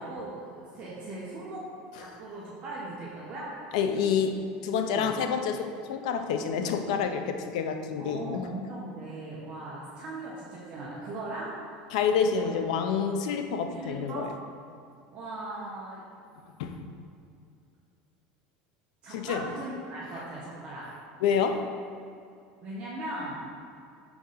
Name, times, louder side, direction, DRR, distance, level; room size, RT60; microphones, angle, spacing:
voice 1, 0.0-1.6 2.0-3.5 4.9-5.1 8.0-11.6 12.4-12.5 13.7-14.2 15.1-16.0 19.0-20.9 22.6-23.4, right 2 dB, 35° right, -6 dB, 1.0 m, -39 dB
voice 2, 3.7-8.5 11.9-14.3 16.6-16.8 19.1-19.5 21.2-21.7, left 6 dB, 85° left, 7 dB, 0.6 m, -28 dB
6.0 x 3.8 x 5.6 m, 2.5 s
cardioid pair, 160°, 4 cm